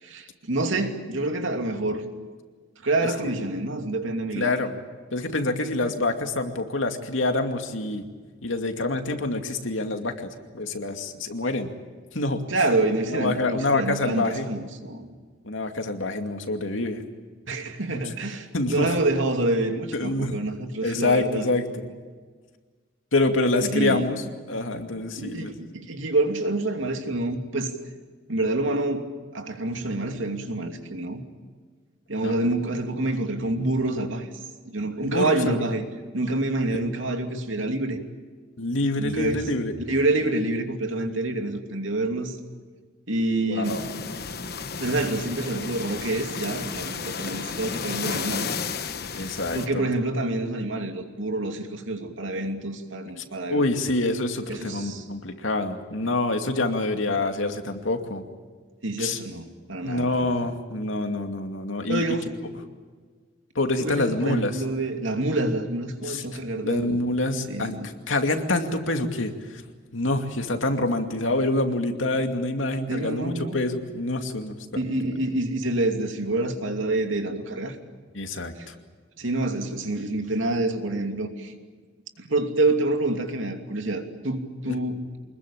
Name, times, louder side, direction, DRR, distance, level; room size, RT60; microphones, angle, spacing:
voice 1, 0.0-2.0 2.8-4.6 12.5-15.1 17.5-21.5 23.7-24.1 25.2-27.7 28.3-29.1 29.3-31.2 32.1-34.3 34.7-35.8 36.1-38.0 39.0-39.4 39.8-42.4 43.1-43.8 44.8-48.5 49.2-53.6 54.5-55.0 58.8-60.5 61.9-62.3 63.8-67.0 67.5-67.9 72.9-73.6 74.7-77.8 78.6-78.7 79.2-81.5 82.3-85.0, right 2 dB, 85° right, 5 dB, 2.8 m, -27 dB
voice 2, 4.3-4.7 5.1-8.0 8.4-11.7 12.1-12.4 13.1-14.5 15.4-17.0 18.5-18.9 19.9-20.4 20.8-21.7 23.1-24.2 24.5-25.6 32.2-32.3 35.0-35.6 38.6-39.7 43.5-43.8 49.1-49.9 53.2-53.3 53.5-58.2 59.0-59.2 59.8-62.0 63.6-64.6 66.0-66.2 66.6-69.6 69.9-74.6 75.0-75.1 78.1-78.7 84.7-84.8, left 2 dB, 90° left, 5 dB, 2.4 m, -26 dB
sound 1, 43.6-49.7, left 5 dB, 55° left, 1.2 m, -33 dB
25.0 x 21.0 x 8.7 m, 1.5 s
head